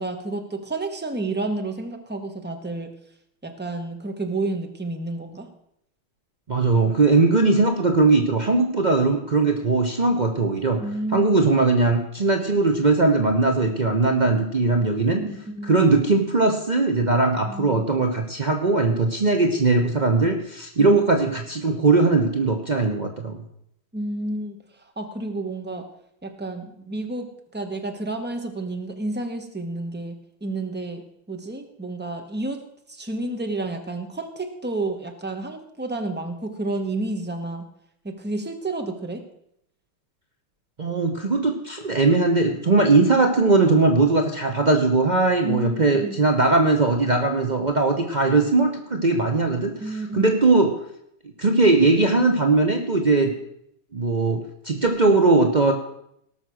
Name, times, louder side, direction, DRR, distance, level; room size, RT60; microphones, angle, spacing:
voice 1, 0.0-2.9 3.4-5.5 10.8-11.4 15.2-15.8 17.4-17.8 20.8-21.0 23.9-24.6 25.0-25.8 26.2-30.2 30.4-31.0 31.3-32.6 32.9-37.7 38.0-39.2 45.4-46.2 49.8-50.4, right 2 dB, 10° right, 5 dB, 0.7 m, -30 dB
voice 2, 6.5-10.8 11.1-15.2 15.6-23.4 40.8-50.8 51.4-53.3 53.9-55.7, right 3 dB, 65° right, 4 dB, 0.4 m, -20 dB
18.5 x 6.2 x 6.3 m, 0.75 s
omnidirectional pair, 2.3 m